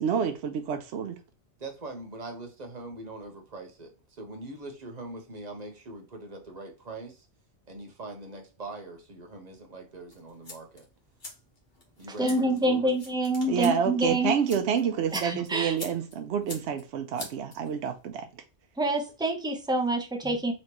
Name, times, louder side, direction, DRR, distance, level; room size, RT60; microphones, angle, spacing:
voice 1, 0.0-1.1 12.2-12.3 13.5-18.3, right 7 dB, 75° right, 0.8 m, -28 dB
voice 2, 1.6-7.3 7.7-10.9 12.0-12.9, right 2 dB, 40° right, 1.0 m, -42 dB
sound 1, 10.1-18.1, left 2 dB, 45° left, 1.6 m, -46 dB
voice 3, 12.2-14.3 15.1-15.7 18.8-20.5, right 1 dB, 5° right, 0.6 m, -26 dB
4.1 x 3.2 x 2.9 m
omnidirectional pair, 1.2 m